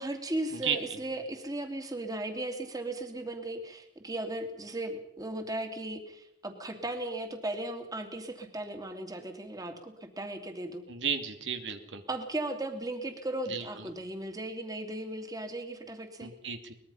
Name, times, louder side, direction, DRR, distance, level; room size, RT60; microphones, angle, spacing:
voice 1, 0.0-10.8 12.1-16.3, right 1 dB, 20° right, 6 dB, 2.6 m, -36 dB
voice 2, 10.9-12.0 13.5-13.9 16.2-16.7, right 6 dB, 80° right, 7 dB, 2.6 m, -34 dB
23.5 x 21.0 x 5.6 m, 0.75 s
head